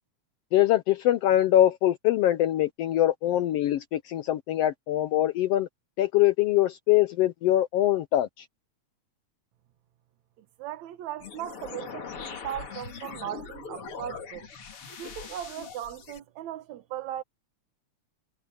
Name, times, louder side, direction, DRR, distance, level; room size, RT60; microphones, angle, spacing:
voice 1, 0.5-5.7 6.0-8.4, left 13 dB, 80° left, 1.4 m, -23 dB
voice 2, 10.6-14.5 15.0-17.2, right 12 dB, 75° right, 2.4 m, -38 dB
sound 1, 11.2-16.2, left 5 dB, 50° left, 3.0 m, -41 dB
omnidirectional pair, 3.4 m